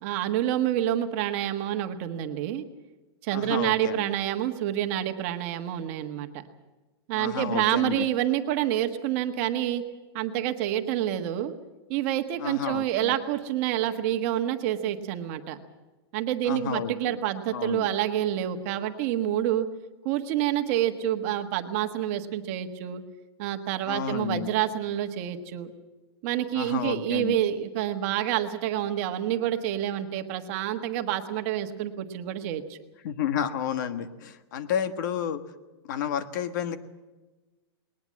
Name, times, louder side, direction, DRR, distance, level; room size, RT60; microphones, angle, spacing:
voice 1, 0.0-2.6 3.2-6.4 7.1-9.8 10.1-11.5 11.9-15.6 16.1-19.7 20.0-23.0 23.4-25.7 26.2-32.8, right 12 dB, 30° right, 6 dB, 1.5 m, -28 dB
voice 2, 3.3-4.1 7.1-8.1 12.4-13.2 16.4-17.2 17.5-17.9 23.9-24.5 26.5-27.4 33.0-35.4 35.8-36.8, left 8 dB, 45° left, 10 dB, 1.4 m, -31 dB
20.5 x 20.0 x 7.6 m, 1.2 s
supercardioid pair, 175°, 14 cm